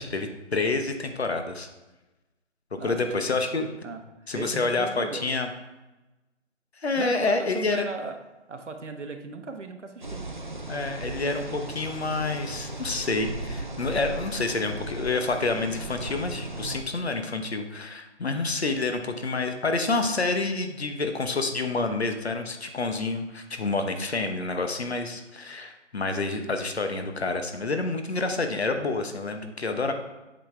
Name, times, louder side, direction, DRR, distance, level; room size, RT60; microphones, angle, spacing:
voice 1, 0.0-1.7 2.8-3.7 4.3-5.5 6.8-7.9 10.7-29.9, left 3 dB, 60° left, 6 dB, 1.0 m, -28 dB
voice 2, 2.8-3.2 3.8-5.3 6.9-8.2 8.5-10.3, right 4 dB, 70° right, 5 dB, 1.1 m, -37 dB
sound 1, 10.0-16.8, right 2 dB, 40° right, 0.5 m, -36 dB
8.7 x 5.6 x 3.3 m, 1.1 s
figure-of-eight pair, 175°, 37 cm